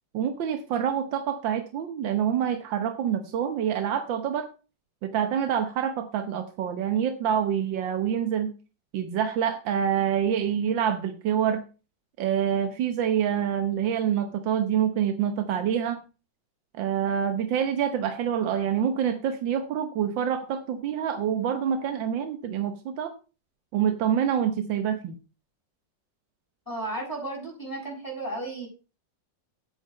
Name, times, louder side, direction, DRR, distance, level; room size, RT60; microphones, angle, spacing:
voice 1, 0.1-4.5 5.0-8.5 8.9-11.6 12.2-16.0 16.8-23.1 23.7-25.2, right 8 dB, 85° right, 8 dB, 1.7 m, -26 dB
voice 2, 26.7-28.7, right 2 dB, 10° left, -3 dB, 6.7 m, -34 dB
8.5 x 8.0 x 5.6 m, 0.33 s
omnidirectional pair, 2.0 m